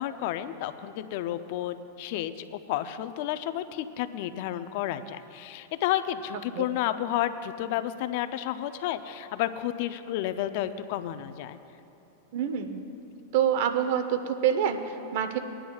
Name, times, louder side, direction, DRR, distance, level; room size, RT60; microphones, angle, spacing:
voice 1, 0.0-11.6, left 12 dB, 60° left, 11 dB, 0.5 m, -31 dB
voice 2, 12.3-12.9 13.3-15.4, right 8 dB, 65° right, 8 dB, 0.8 m, -26 dB
22.0 x 10.0 x 2.4 m, 2.9 s
hypercardioid pair, 120°, 0 cm